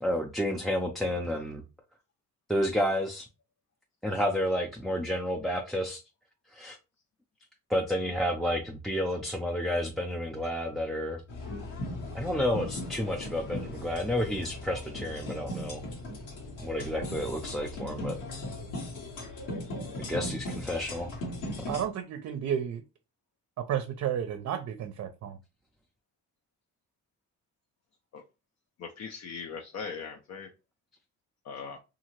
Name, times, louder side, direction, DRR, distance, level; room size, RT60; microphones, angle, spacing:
voice 1, 0.0-1.6 2.5-3.3 4.0-6.0 6.5-6.8 7.7-11.2 12.1-15.8 16.6-18.2 20.0-21.1, equal, ahead, 0.4 m, -30 dB
sound 1, 11.3-21.8, left 1 dB, 85° left, 1.2 m, -38 dB
voice 2, 21.7-22.8 23.6-25.4, right 9 dB, 55° right, 0.5 m, -32 dB
voice 3, 28.8-30.5 31.5-31.8, left 5 dB, 60° left, 0.5 m, -40 dB
2.7 x 2.4 x 3.0 m
cardioid pair, 90°, 30 cm